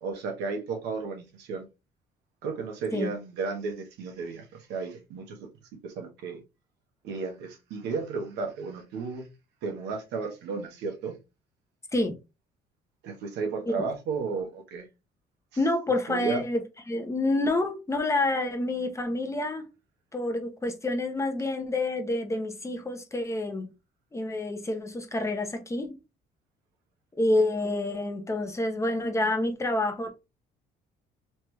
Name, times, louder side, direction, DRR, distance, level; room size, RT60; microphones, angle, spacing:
voice 1, 0.0-1.6 2.4-5.5 5.8-6.4 7.0-9.3 9.6-11.2 13.0-14.9 16.1-16.4, right 4 dB, 85° right, 1.1 m, -33 dB
voice 2, 15.6-19.7 20.1-23.7 24.1-26.0 27.1-30.1, left 2 dB, 15° left, 0.8 m, -28 dB
3.3 x 3.1 x 3.3 m
cardioid pair, 110°, 17 cm